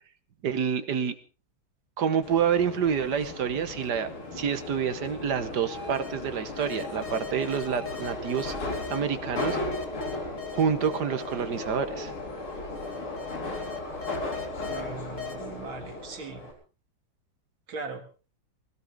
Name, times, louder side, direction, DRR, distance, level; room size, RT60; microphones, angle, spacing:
voice 1, 0.4-1.2 2.0-8.5 8.9-9.6 10.5-12.1, right 7 dB, 55° right, 10 dB, 1.6 m, -28 dB
Subway metro underground, 2.2-16.5, left 2 dB, 85° left, 5.0 m, -36 dB
sound 1, 5.7-6.1 6.6-9.0 9.4-11.7 12.5-14.8 15.2-15.4, left 7 dB, 25° left, 1.7 m, -40 dB
voice 2, 14.6-16.4 17.7-18.0, right 4 dB, 70° right, 5 dB, 2.9 m, -39 dB
21.0 x 17.0 x 3.6 m, 0.34 s
omnidirectional pair, 2.3 m